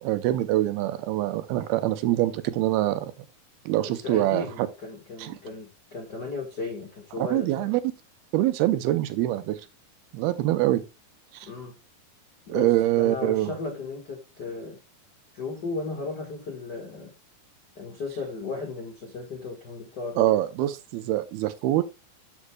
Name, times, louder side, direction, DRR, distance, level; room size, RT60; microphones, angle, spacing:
voice 1, 0.0-3.1 3.7-4.7 5.2-5.4 7.2-7.8 8.3-9.6 10.1-10.8 11.3-11.5 12.5-13.5 20.2-21.8, right 15 dB, 80° right, 2.5 m, -24 dB
voice 2, 3.8-7.7 11.4-11.7 12.5-14.8 15.3-17.1 17.7-20.3, left 3 dB, 65° left, 1.0 m, -35 dB
13.0 x 6.4 x 2.2 m
omnidirectional pair, 4.6 m